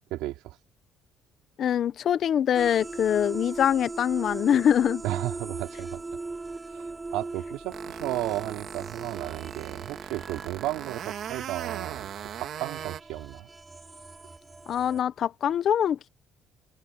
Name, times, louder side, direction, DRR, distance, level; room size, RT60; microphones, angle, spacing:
voice 1, 0.1-0.6 5.0-6.0 6.7-13.5, right 17 dB, 85° right, 3.8 m, -34 dB
voice 2, 1.6-5.0 14.7-16.1, left 9 dB, 55° left, 1.0 m, -24 dB
sound 1, 2.5-15.0, right 3 dB, 20° right, 3.6 m, -40 dB
sound 2, 7.7-13.0, right 10 dB, 60° right, 3.3 m, -39 dB
open air
cardioid pair, 105°, 0 cm